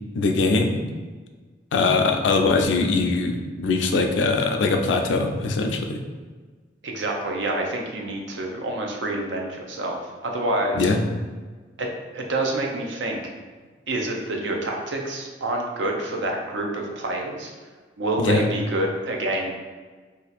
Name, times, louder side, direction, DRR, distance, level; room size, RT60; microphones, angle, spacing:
voice 1, 0.1-0.8 1.7-6.0 10.8-11.0 18.2-18.4, left 3 dB, 85° left, 4 dB, 0.4 m, -21 dB
voice 2, 6.8-10.0 10.2-10.9 11.8-13.2 13.9-17.5 18.0-19.5, right 1 dB, 90° right, 1 dB, 0.6 m, -27 dB
2.7 x 2.4 x 4.0 m, 1.4 s
head